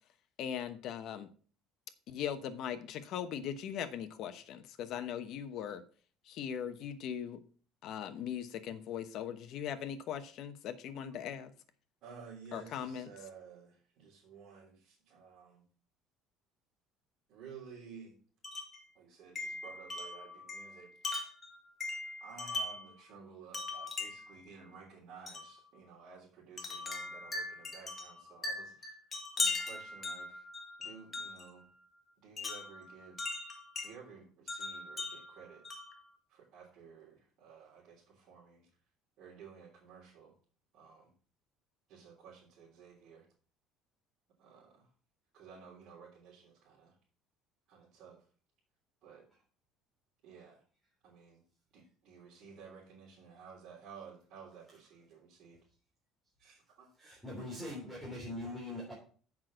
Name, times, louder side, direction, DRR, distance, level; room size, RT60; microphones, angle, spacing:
voice 1, 0.4-1.3 2.1-5.8 6.3-7.4 7.8-11.5 12.5-13.1, left 9 dB, 55° left, 10 dB, 1.0 m, -39 dB
voice 2, 12.0-15.6 17.3-18.2 18.9-21.0 22.2-30.5 30.8-31.7 32.2-33.2 33.8-35.6 36.3-38.7 39.2-40.3 40.7-41.1 41.9-43.3 44.4-44.9 45.3-46.9 47.7-48.3 49.0-49.3 50.2-50.6 51.0-51.4 51.7-55.6 56.4-56.9, right 6 dB, 55° right, -7 dB, 3.4 m, -54 dB
Wind chime, 18.4-18.8 19.4-22.9 23.5-24.4 25.3-25.5 26.6-31.5 32.4-33.9 34.5-36.0, left 3 dB, 25° left, 1.8 m, -39 dB
voice 3, 57.0-58.9, left 1 dB, ahead, -5 dB, 3.2 m, -42 dB
7.4 x 6.0 x 6.3 m, 0.42 s
cardioid pair, 145°, 0 cm